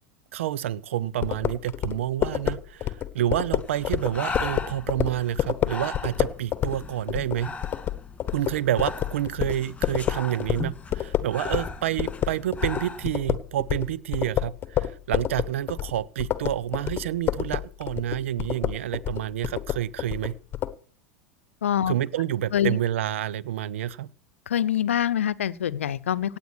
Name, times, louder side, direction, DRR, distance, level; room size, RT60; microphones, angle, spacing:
voice 1, 0.3-7.5 8.3-20.3 21.9-24.1, right 12 dB, 70° right, 21 dB, 0.7 m, -28 dB
sound 1, 1.2-11.7 12.0-20.7, left 12 dB, 35° left, 1.2 m, -28 dB
Breathing, 3.6-13.1, left 3 dB, 15° left, 2.7 m, -38 dB
voice 2, 21.6-21.9 22.5-22.8 24.5-26.4, left 10 dB, 80° left, 17 dB, 0.7 m, -25 dB
17.5 x 8.8 x 6.2 m, 0.42 s
hypercardioid pair, 90°, 7 cm